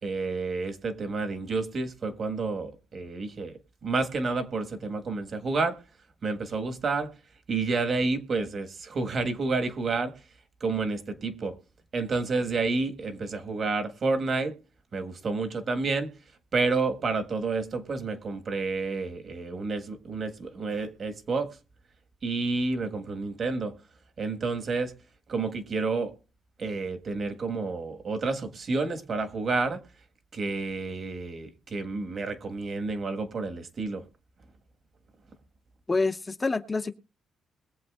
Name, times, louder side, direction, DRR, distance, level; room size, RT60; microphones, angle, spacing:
voice 1, 0.0-3.5 3.8-5.8 6.2-7.1 7.5-10.1 10.6-11.5 11.9-14.5 14.9-16.1 16.5-21.5 22.2-23.7 24.2-24.9 25.3-26.1 26.6-29.8 30.3-34.0, right 3 dB, 45° right, 1.5 m, -30 dB
voice 2, 35.9-36.9, left 3 dB, 25° left, 0.8 m, -27 dB
21.5 x 7.6 x 2.4 m
cardioid pair, 100°, 0 cm